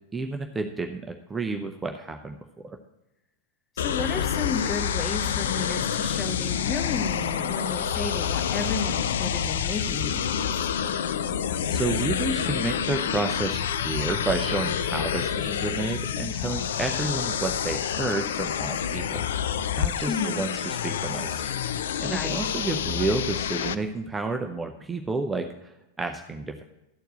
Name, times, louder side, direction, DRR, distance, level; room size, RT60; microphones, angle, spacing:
voice 1, 0.1-2.8 11.7-19.3 19.8-21.5 22.0-26.6, right 3 dB, 10° right, 5 dB, 0.6 m, -30 dB
sound 1, 3.8-23.7, left 8 dB, 60° left, 0.5 m, -28 dB
voice 2, 3.8-10.6 20.1-20.4 22.0-22.4, left 4 dB, 20° left, 7 dB, 1.1 m, -32 dB
12.5 x 4.6 x 7.8 m, 0.96 s
figure-of-eight pair, 90°, 0 cm